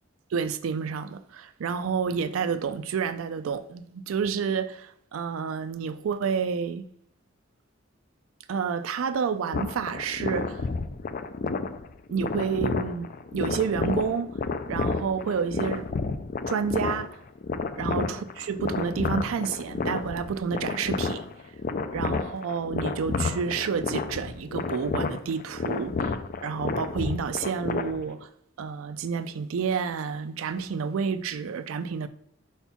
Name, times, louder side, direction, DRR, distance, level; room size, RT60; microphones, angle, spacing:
voice 1, 0.3-6.9 8.5-10.7 12.1-14.4 14.7-15.9 16.5-17.2 17.8-21.3 21.9-28.3 28.6-32.1, right 6 dB, 80° right, 0.4 m, -29 dB
sound 1, 9.5-28.2, left 4 dB, 45° left, 0.4 m, -31 dB
4.4 x 4.4 x 5.6 m
head